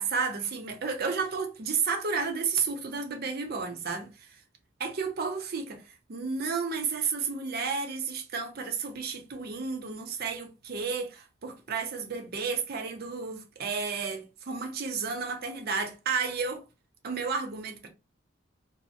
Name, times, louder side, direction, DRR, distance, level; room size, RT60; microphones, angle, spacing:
voice 1, 0.0-4.4 4.8-16.6 17.0-17.9, right 5 dB, 50° right, 0.5 m, -32 dB
2.6 x 2.0 x 2.5 m
head